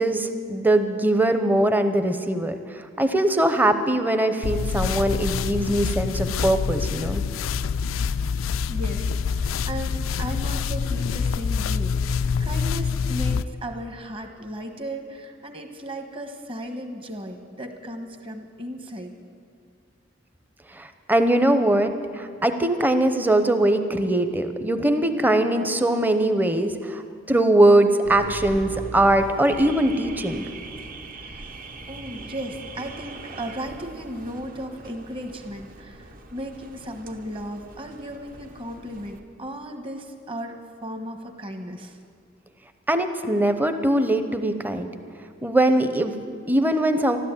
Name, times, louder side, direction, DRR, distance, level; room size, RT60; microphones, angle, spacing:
voice 1, 0.0-7.2 20.7-27.0 27.3-30.5 42.9-44.9 45.4-47.2, right 1 dB, 10° right, 8 dB, 0.7 m, -21 dB
sound 1, 4.4-13.4, left 5 dB, 85° left, 0.4 m, -26 dB
voice 2, 8.7-19.1 31.1-31.5 31.9-42.0, equal, 30° right, 5 dB, 1.2 m, -36 dB
Car / Alarm, 28.0-39.2, right 2 dB, 45° right, 0.9 m, -40 dB
13.0 x 12.5 x 8.2 m, 2.2 s
head